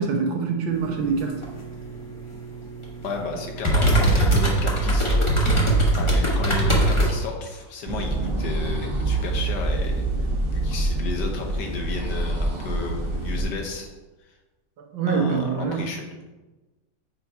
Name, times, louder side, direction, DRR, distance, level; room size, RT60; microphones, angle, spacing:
voice 1, 0.0-1.3 14.9-15.8, right 5 dB, 80° right, 2 dB, 1.7 m, -24 dB
sound 1, 0.7-7.1, right 1 dB, 20° left, 0.8 m, -22 dB
voice 2, 3.0-5.3 5.9-10.0 10.5-13.9 15.1-16.0, left 4 dB, 65° left, 2 dB, 1.4 m, -33 dB
sound 2, 7.9-13.4, right 2 dB, 40° right, 0.8 m, -26 dB
7.7 x 2.8 x 4.6 m, 1.2 s
omnidirectional pair, 2.1 m